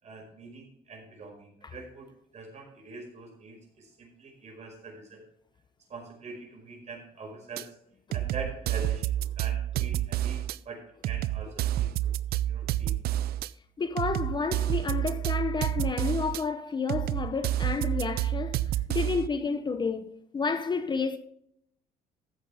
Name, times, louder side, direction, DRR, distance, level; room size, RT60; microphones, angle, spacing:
voice 1, 0.0-5.2 5.9-7.7 8.1-11.9 12.4-13.0, right 3 dB, 40° right, 5.2 m, -44 dB
sound 1, 7.6-7.7 8.1-10.6 11.0-13.5 14.0-16.4 16.9-19.3, right 13 dB, 65° right, 0.5 m, -29 dB
voice 2, 13.8-21.2, left 5 dB, 25° left, 0.7 m, -31 dB
13.5 x 9.0 x 3.5 m
cardioid pair, 110°, 17 cm